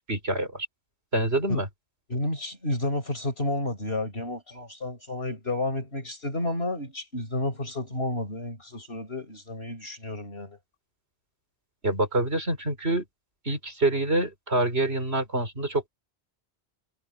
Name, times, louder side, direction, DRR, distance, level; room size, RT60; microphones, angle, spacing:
voice 1, 0.1-0.7 1.1-1.7 11.8-13.0 13.5-15.8, right 2 dB, 65° right, 5.3 m, -26 dB
voice 2, 2.1-10.6, left 1 dB, 65° left, 5.6 m, -31 dB
omnidirectional pair, 1.1 m